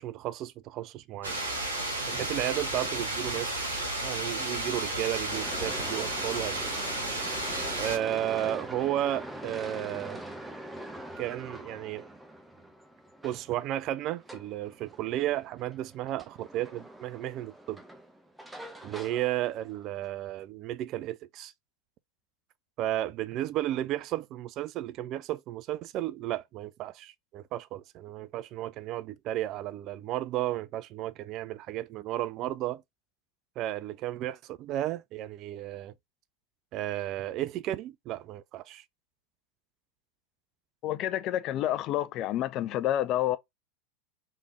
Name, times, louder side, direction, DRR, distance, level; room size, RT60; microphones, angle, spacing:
voice 1, 0.0-1.4 2.1-3.7 4.0-6.7 7.8-10.2 11.2-12.1 13.2-17.8 18.8-21.5 22.8-32.8 33.6-35.9 36.7-38.8, right 13 dB, 40° right, 0.3 m, -33 dB
sound 1, 1.2-8.0, right 1 dB, 80° right, 1.9 m, -32 dB
sound 2, 5.3-20.1, right 1 dB, 5° right, 0.9 m, -44 dB
voice 2, 40.8-43.4, left 12 dB, 40° left, 0.4 m, -29 dB
3.6 x 3.3 x 2.8 m
figure-of-eight pair, 85°, 0 cm